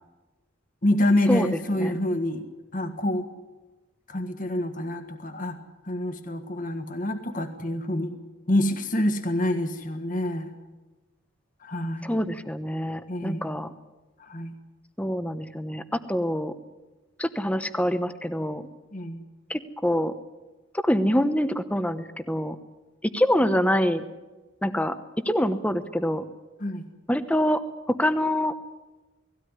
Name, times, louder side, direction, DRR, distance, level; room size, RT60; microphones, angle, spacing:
voice 1, 0.8-2.4 2.7-3.3 4.1-5.6 5.8-8.2 8.5-10.5 11.6-12.1 13.1-13.5 14.2-14.5 18.9-19.2 26.6-26.8, left 1 dB, 40° left, 7 dB, 1.6 m, -27 dB
voice 2, 12.0-13.7 15.0-16.5 17.2-18.7 19.5-20.1 20.8-22.6 23.0-24.0 24.6-25.0 25.2-26.2 27.1-27.6 27.9-28.5, equal, 5° left, 11 dB, 0.9 m, -25 dB
18.5 x 16.5 x 9.8 m, 1.2 s
head